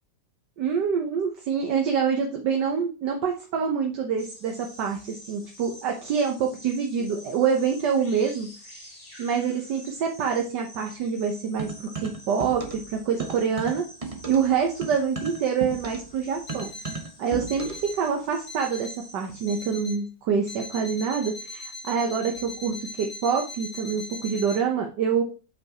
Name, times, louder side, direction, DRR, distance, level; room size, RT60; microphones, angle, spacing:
voice 1, 0.6-8.5 9.2-13.9 14.3-16.7 17.2-25.2, right 6 dB, 70° right, 2 dB, 1.6 m, -26 dB
sound 1, 4.2-19.7, equal, 20° left, 1.9 m, -48 dB
sound 2, 11.6-12.9 13.2-17.9, right 4 dB, 25° right, 1.0 m, -36 dB
Alarm, 16.5-17.0 17.5-18.0 18.5-19.0 19.5-20.0 20.5-24.6, left 2 dB, 75° left, 2.1 m, -40 dB
7.6 x 5.6 x 2.9 m, 0.34 s
omnidirectional pair, 2.0 m